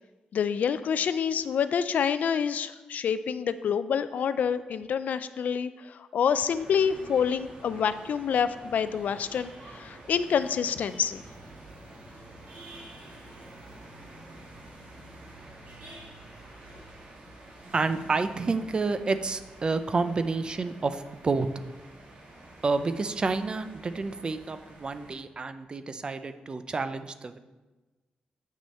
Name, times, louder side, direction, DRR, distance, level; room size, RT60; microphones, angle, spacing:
voice 1, 0.3-11.2, left 7 dB, 70° left, 13 dB, 0.4 m, -27 dB
sound 1, 6.5-25.2, right 1 dB, 65° right, 2.5 m, -48 dB
voice 2, 17.7-21.5 22.6-27.4, right 4 dB, 35° right, 10 dB, 0.5 m, -29 dB
8.6 x 6.2 x 4.2 m, 1.2 s
wide cardioid pair, 125°, 3 cm